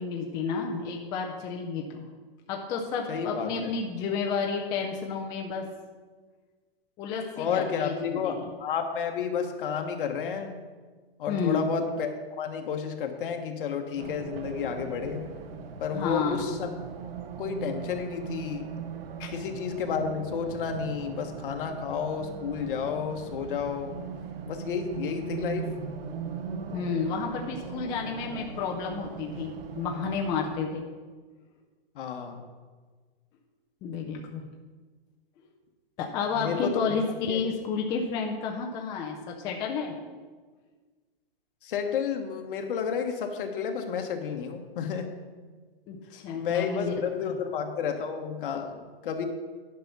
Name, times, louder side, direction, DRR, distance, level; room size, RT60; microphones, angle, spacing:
voice 1, 0.0-2.0 2.5-5.6 7.0-8.5 11.3-11.8 15.9-16.4 19.2-19.3 26.7-30.8 33.8-34.5 36.0-39.9 45.9-46.9 47.2-47.4, left 5 dB, 15° left, 1 dB, 0.4 m, -31 dB
voice 2, 3.1-3.7 7.4-10.6 11.2-15.3 15.8-16.7 17.4-18.7 19.3-24.0 24.5-25.7 31.9-32.5 36.3-36.8 37.3-37.4 41.6-45.1 46.3-49.3, left 6 dB, 60° left, 5 dB, 1.3 m, -31 dB
Race car auto racing, 14.0-30.6, right 6 dB, 70° right, 0.9 m, -39 dB
10.0 x 5.8 x 5.3 m, 1.4 s
hypercardioid pair, 160°, 30 cm